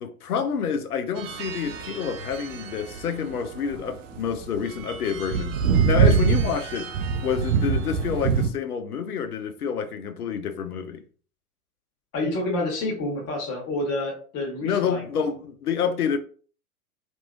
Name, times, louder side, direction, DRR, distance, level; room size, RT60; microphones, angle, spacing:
voice 1, 0.0-5.6 5.9-6.9 7.2-11.0 14.6-16.2, left 7 dB, 85° left, 0.5 m, -28 dB
sound 1, 1.2-8.5, right 6 dB, 60° right, 0.5 m, -25 dB
voice 2, 12.1-15.0, left 2 dB, 35° left, 1.2 m, -28 dB
3.0 x 2.6 x 2.2 m
figure-of-eight pair, 100°, 44 cm